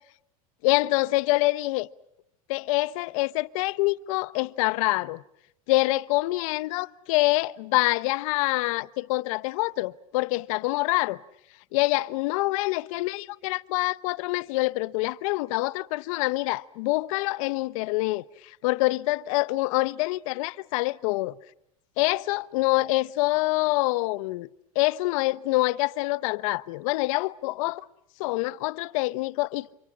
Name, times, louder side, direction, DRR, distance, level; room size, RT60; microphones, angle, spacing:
voice 1, 0.6-1.9 2.5-5.2 5.7-11.2 11.7-21.3 22.0-24.5 24.7-27.8 28.2-29.7, left 20 dB, 65° left, 0.9 m, -26 dB
29.5 x 26.5 x 6.4 m
supercardioid pair, 110°, 18 cm